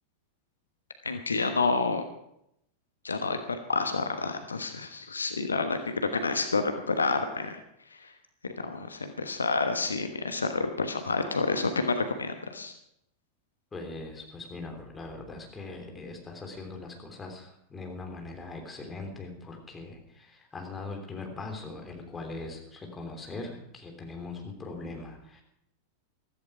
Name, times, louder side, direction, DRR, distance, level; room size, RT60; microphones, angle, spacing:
voice 1, 1.0-2.0 3.0-7.6 7.9-8.1 8.6-12.7, left 3 dB, 75° left, 8 dB, 1.1 m, -29 dB
voice 2, 13.7-25.4, left 3 dB, 15° left, 2 dB, 3.3 m, -41 dB
15.0 x 14.0 x 4.9 m, 0.76 s
figure-of-eight pair, 90°, 0 cm